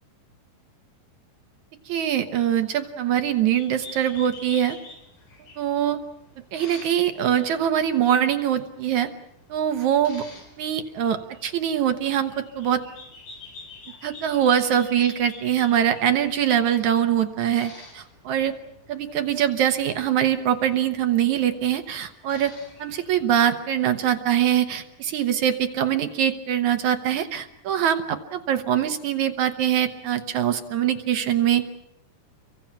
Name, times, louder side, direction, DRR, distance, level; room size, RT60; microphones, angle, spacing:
voice 1, 1.9-4.8 5.6-6.0 6.5-9.1 9.5-10.2 10.6-12.8 14.0-18.5 18.9-22.5 22.8-31.8, right 10 dB, 65° right, 8 dB, 2.2 m, -23 dB
sound 1, 3.3-23.2, left 3 dB, 90° left, 6.2 m, -48 dB
30.0 x 24.0 x 5.9 m, 0.78 s
omnidirectional pair, 4.0 m